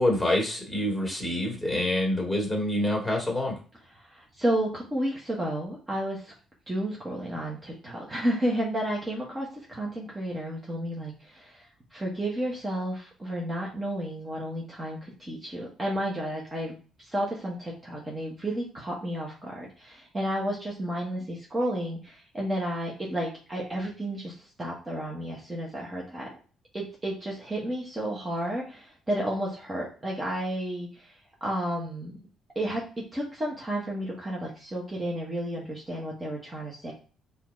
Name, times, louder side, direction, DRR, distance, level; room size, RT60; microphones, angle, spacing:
voice 1, 0.0-3.6, left 1 dB, 5° left, -1 dB, 2.4 m, -26 dB
voice 2, 4.0-6.3 6.7-11.7 11.9-16.7 17.1-26.3 26.7-31.1 31.4-32.1 32.5-36.9, right 1 dB, 25° right, -3 dB, 1.5 m, -32 dB
4.3 x 2.9 x 3.9 m, 0.38 s
supercardioid pair, 70°, 0 cm